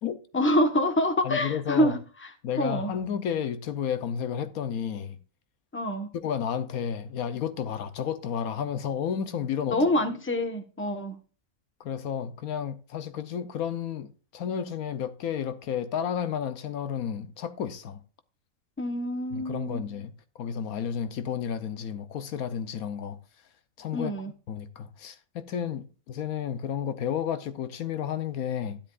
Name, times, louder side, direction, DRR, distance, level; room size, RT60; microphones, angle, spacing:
voice 1, 0.3-2.0 2.6-2.9 5.7-6.1 9.7-11.2 18.8-19.8 23.9-24.3, left 1 dB, 10° left, 1.0 m, -26 dB
voice 2, 1.2-1.9 2.4-5.2 6.1-9.8 11.8-18.0 19.3-20.1 20.4-23.2 23.8-24.1 24.5-28.8, left 8 dB, 80° left, 1.2 m, -32 dB
12.5 x 10.5 x 2.4 m
omnidirectional pair, 1.5 m